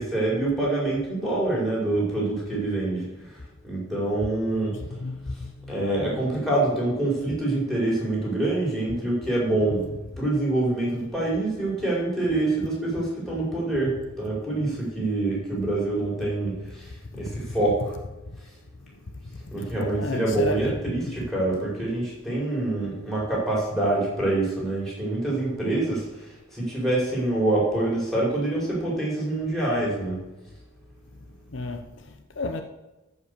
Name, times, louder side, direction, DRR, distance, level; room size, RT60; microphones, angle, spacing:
voice 1, 0.0-4.8 5.7-9.9 10.2-18.0 19.5-30.2, right 2 dB, ahead, 4.6 m, -26 dB
voice 2, 4.7-6.3 17.1-17.5 19.2-19.3 19.6-21.3 21.8-22.1 31.5-32.6, left 3 dB, 65° left, 0.8 m, -34 dB
14.0 x 5.5 x 6.7 m
head